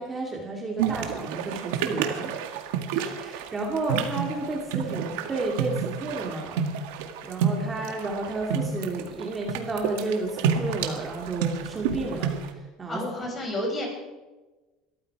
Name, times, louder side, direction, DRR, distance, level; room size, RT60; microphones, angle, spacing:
voice 1, 0.0-2.3 2.9-6.7 7.2-13.0, right 2 dB, 20° right, 0 dB, 2.6 m, -32 dB
sound 1, 0.8-12.5, right 7 dB, 85° right, 2.0 m, -30 dB
voice 2, 12.9-13.9, left 1 dB, 25° left, 1 dB, 5.6 m, -30 dB
21.5 x 14.0 x 4.8 m, 1.2 s
cardioid pair, 140°, 0 cm